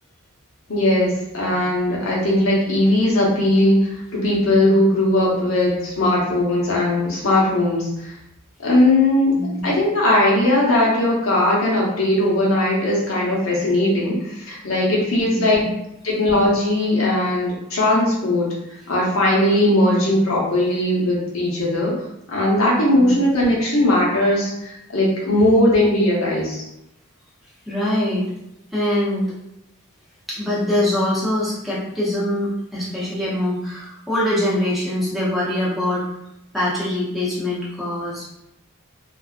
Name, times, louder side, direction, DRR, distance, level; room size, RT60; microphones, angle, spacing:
voice 1, 0.7-3.9 4.2-7.9 8.6-15.7 16.0-18.5 18.9-26.6, left 1 dB, 80° left, -4 dB, 0.9 m, -19 dB
voice 2, 15.3-15.7 22.9-23.1 27.7-28.2 28.7-29.3 30.3-36.0 36.5-38.2, left 1 dB, ahead, -8 dB, 0.7 m, -23 dB
2.5 x 2.2 x 2.4 m, 0.84 s
head